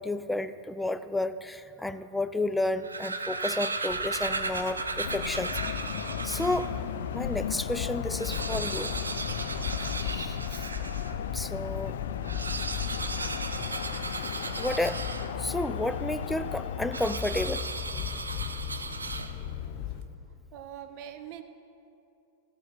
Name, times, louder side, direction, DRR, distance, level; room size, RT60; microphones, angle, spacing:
voice 1, 0.0-5.5 6.2-6.7 7.1-8.9 10.0-10.7 11.3-11.9 14.1-14.2 14.6-15.0 15.4-17.6, left 2 dB, 5° left, 11 dB, 0.5 m, -31 dB
sound 1, 2.6-6.8 7.4-7.5 7.7-7.8 8.1-11.2 12.1-15.6 16.9-19.6, right 3 dB, 90° right, 0.7 m, -35 dB
sound 2, 3.9-20.0, left 9 dB, 50° left, 0.9 m, -37 dB
sound 3, 5.0-17.2, left 8 dB, 70° left, 0.5 m, -37 dB
voice 2, 20.5-21.4, right 10 dB, 50° right, 8 dB, 1.0 m, -42 dB
16.5 x 5.6 x 8.4 m, 2.7 s
hypercardioid pair, 100°, 0 cm